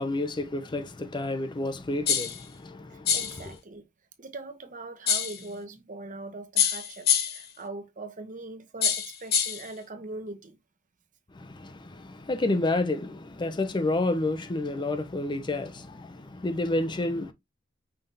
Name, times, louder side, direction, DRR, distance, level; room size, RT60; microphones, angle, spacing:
voice 1, 0.0-3.5 11.4-17.3, left 2 dB, 25° left, 0.5 m, -30 dB
sound 1, 2.1-2.4 3.1-3.4 5.1-5.4 6.6-7.5 8.8-9.7, left 8 dB, 55° left, 0.9 m, -25 dB
voice 2, 2.9-3.8 4.2-10.6, right 2 dB, 45° right, 0.9 m, -41 dB
5.6 x 3.3 x 2.6 m
head